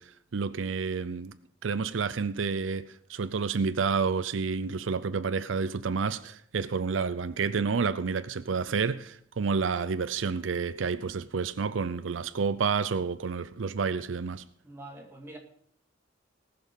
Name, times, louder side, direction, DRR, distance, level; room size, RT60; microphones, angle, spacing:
voice 1, 0.0-1.3 1.6-14.4, right 5 dB, 85° right, 0.5 m, -29 dB
voice 2, 14.6-15.4, right 1 dB, 15° right, 2.1 m, -46 dB
19.0 x 6.8 x 5.4 m
head